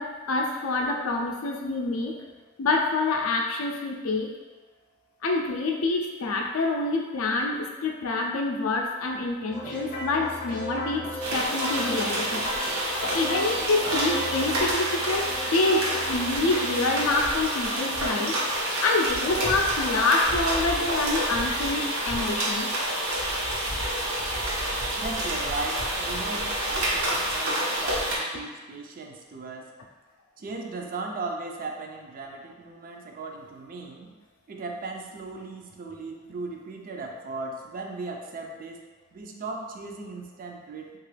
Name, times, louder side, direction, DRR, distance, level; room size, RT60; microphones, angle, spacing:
voice 1, 0.0-2.2 2.6-4.3 5.2-12.5 13.0-22.7, left 3 dB, 80° left, 1 dB, 0.4 m, -27 dB
sound 1, 9.5-18.7, equal, 40° left, 0.7 m, -37 dB
sound 2, 11.2-28.2, right 1 dB, 80° right, 0.7 m, -28 dB
voice 2, 25.0-29.7 30.4-34.1 34.5-41.0, right 3 dB, 45° right, 2 dB, 0.4 m, -37 dB
3.0 x 2.4 x 3.2 m, 1.3 s
head